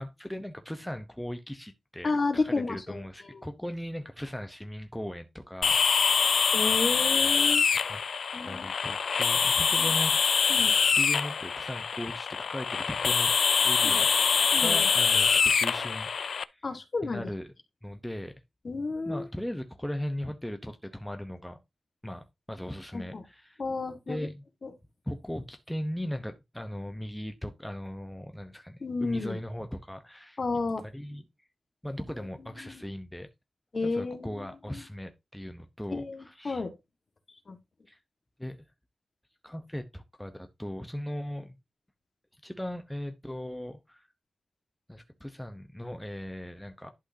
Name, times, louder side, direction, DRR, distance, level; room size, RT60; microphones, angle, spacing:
voice 1, 0.0-6.5 7.9-8.0 8.4-10.2 11.0-13.3 13.6-14.1 14.6-16.7 17.0-17.5 17.8-18.3 19.0-21.6 22.0-23.6 24.1-24.4 25.1-30.4 30.9-31.2 31.8-33.3 33.8-36.6 37.9-38.0 38.4-38.6 39.4-41.6 42.4-44.1 44.9-46.9, equal, 5° left, 0.9 m, -38 dB
voice 2, 2.0-3.0 3.3-3.5 6.5-7.6 8.3-8.7 9.8-9.9 10.5-10.7 13.8-14.0 14.5-14.9 16.6-17.2 18.6-19.3 22.9-23.2 23.6-24.3 24.6-24.7 28.8-29.4 30.4-30.8 32.2-32.8 33.7-34.8 35.9-36.7 37.5-37.6, left 3 dB, 45° left, 1.7 m, -32 dB
sound 1, 5.6-16.4, left 6 dB, 80° left, 0.4 m, -25 dB
11.5 x 6.2 x 2.8 m
wide cardioid pair, 135°, 0 cm